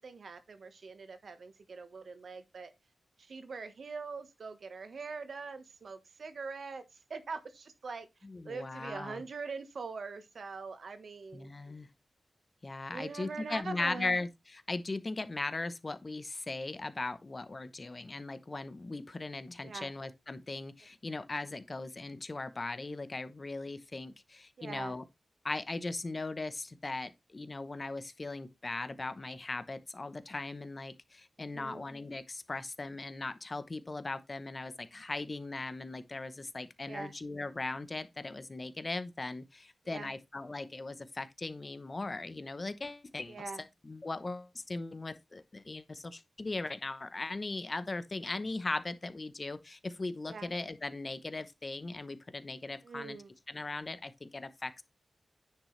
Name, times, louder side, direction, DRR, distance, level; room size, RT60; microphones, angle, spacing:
voice 1, 0.0-2.7 3.2-8.1 8.4-11.5 12.9-14.2 19.6-19.9 24.6-25.0 31.4-31.9 36.9-37.1 39.8-40.1 43.3-43.6 50.2-50.5 52.8-53.3, right 4 dB, 65° right, 1.3 m, -43 dB
voice 2, 8.2-9.2 11.3-11.9 12.6-25.0 25.4-43.4 43.8-53.2 53.5-54.8, left 2 dB, 30° left, 0.9 m, -39 dB
9.8 x 6.4 x 3.2 m
wide cardioid pair, 115°, 0 cm